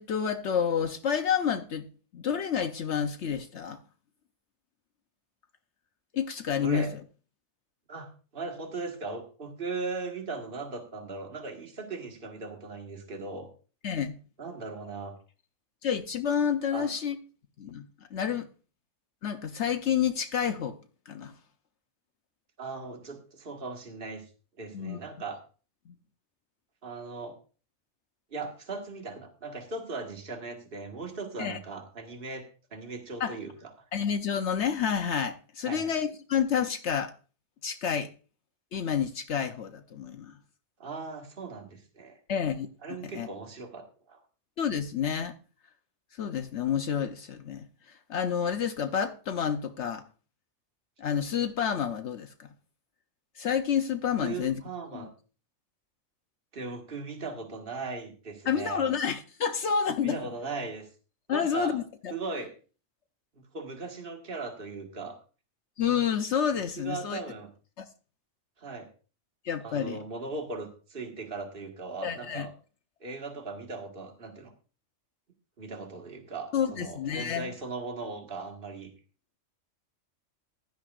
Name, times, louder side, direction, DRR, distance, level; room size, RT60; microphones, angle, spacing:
voice 1, 0.0-1.9 2.1-3.8 6.1-6.9 13.8-14.2 15.8-17.2 17.6-17.8 18.1-18.5 19.2-20.8 21.1-21.3 24.7-25.0 25.9-26.0 31.4-31.6 33.2-33.4 33.9-37.1 37.6-38.1 38.7-40.4 42.3-43.3 44.6-45.3 46.1-50.0 51.0-52.5 53.4-54.6 54.9-55.1 58.5-60.2 61.3-62.1 65.8-67.2 67.8-67.9 69.4-70.0 72.0-72.5 76.5-77.5, left 7 dB, 70° left, 1.0 m, -29 dB
voice 2, 6.6-6.9 7.9-13.5 14.4-15.2 16.7-16.9 22.6-24.3 24.6-25.4 26.8-27.4 28.3-33.9 35.6-35.9 40.8-42.2 42.8-44.2 54.2-55.1 56.5-58.9 60.0-60.9 61.3-61.8 62.1-62.5 63.4-65.2 66.8-67.5 68.6-68.9 69.6-72.5 73.0-74.5 75.6-78.9, right 3 dB, 45° right, 1.9 m, -38 dB
15.5 x 11.5 x 2.5 m
omnidirectional pair, 1.3 m